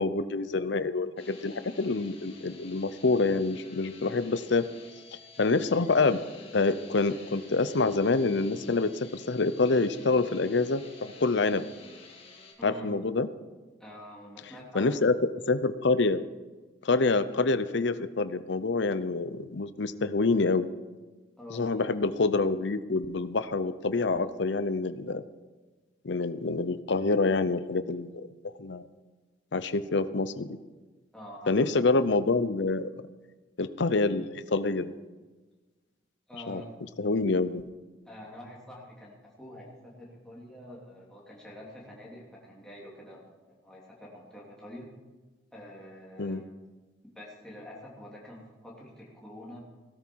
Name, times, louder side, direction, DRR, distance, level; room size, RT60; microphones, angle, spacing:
voice 1, 0.0-4.7 5.4-6.2 6.5-11.7 12.6-13.3 14.7-15.2 15.5-16.2 16.8-20.7 21.5-25.2 26.0-28.3 28.6-28.9 29.5-30.5 31.5-32.9 33.6-34.9 36.5-36.6 37.0-37.6 46.2-46.4, left 3 dB, 70° left, 13 dB, 0.7 m, -26 dB
sound 1, 1.2-12.5, left 3 dB, 30° left, 2.1 m, -51 dB
voice 2, 12.6-12.9 13.8-15.0 21.4-21.9 31.1-32.0 36.3-36.7 38.0-43.2 43.6-44.9 45.5-46.4 47.1-49.6, equal, 5° left, -5 dB, 3.1 m, -46 dB
17.5 x 12.5 x 4.7 m, 1.3 s
head